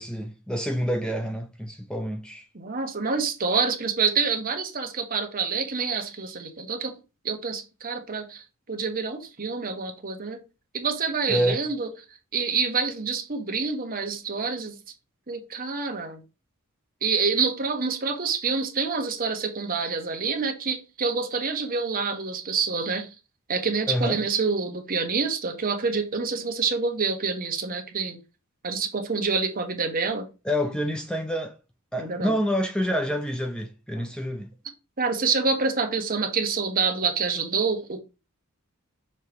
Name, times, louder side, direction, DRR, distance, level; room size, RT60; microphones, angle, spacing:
voice 1, 0.0-2.4 11.3-11.6 23.9-24.2 30.5-31.6 31.9-34.5, equal, 5° left, 0.5 m, -27 dB
voice 2, 2.5-6.9 7.2-8.4 8.7-10.4 10.7-11.9 12.3-14.8 15.3-16.2 17.0-23.1 23.5-28.2 28.6-30.3 32.0-32.3 34.0-34.1 35.0-38.0, right 5 dB, 40° right, 1.2 m, -27 dB
6.5 x 3.1 x 5.1 m
head